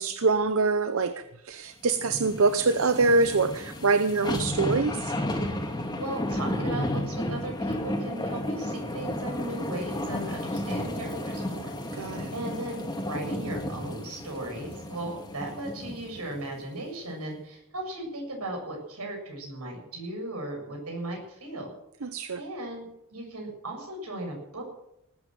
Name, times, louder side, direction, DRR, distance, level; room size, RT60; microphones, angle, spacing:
voice 1, 0.0-5.1 11.9-12.3 22.0-22.4, right 3 dB, 65° right, 0.8 m, -25 dB
sound 1, 2.0-16.4 16.8-16.9, left 1 dB, 20° left, 2.2 m, -33 dB
voice 2, 6.0-11.7 12.3-21.7 22.4-24.6, right 1 dB, 85° right, 7.2 m, -37 dB
19.0 x 9.4 x 7.7 m
head